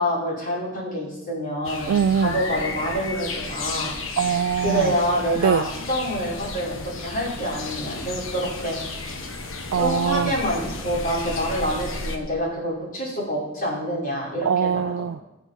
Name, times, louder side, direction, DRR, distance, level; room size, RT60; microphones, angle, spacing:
voice 1, 0.0-4.2 4.6-9.1 9.7-14.9, equal, 45° left, 5.4 m, -27 dB
sound 1, 1.6-12.2, left 3 dB, 75° left, 1.4 m, -33 dB
voice 2, 1.9-2.4 4.2-4.9 5.4-5.6 9.7-10.4 14.5-15.2, right 8 dB, 85° right, 0.3 m, -22 dB
21.0 x 7.1 x 4.5 m
head